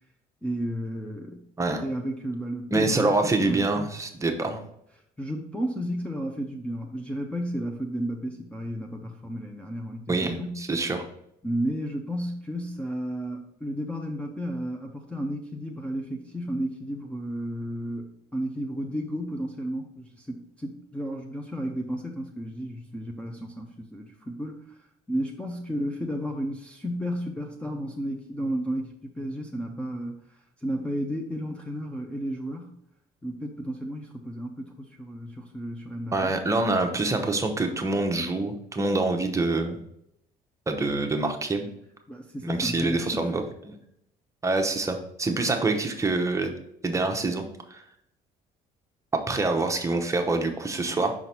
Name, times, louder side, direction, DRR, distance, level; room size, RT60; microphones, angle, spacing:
voice 1, 0.4-1.4 1.8-3.9 5.2-10.6 11.4-32.7 33.2-36.3 42.1-43.4, equal, 5° left, 2 dB, 0.6 m, -33 dB
voice 2, 2.7-4.6 10.1-11.1 36.1-39.8 40.7-41.7 42.4-43.8 44.4-46.5 46.8-47.4 47.7-47.8 49.1-51.1, right 2 dB, 20° right, 4 dB, 0.8 m, -26 dB
5.8 x 3.9 x 4.3 m, 0.75 s
cardioid pair, 110°, 17 cm